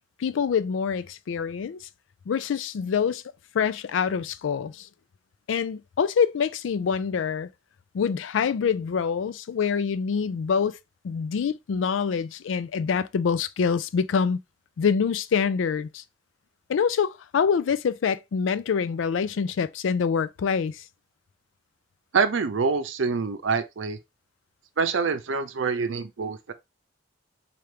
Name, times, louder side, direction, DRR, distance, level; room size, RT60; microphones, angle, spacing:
voice 1, 0.2-1.8 2.3-3.2 3.5-4.9 5.5-7.5 7.9-10.8 11.0-14.4 14.8-16.0 16.7-20.8, left 6 dB, 90° left, 0.4 m, -25 dB
voice 2, 22.1-24.0 24.8-26.5, right 5 dB, 85° right, 0.6 m, -26 dB
4.4 x 2.5 x 3.2 m
head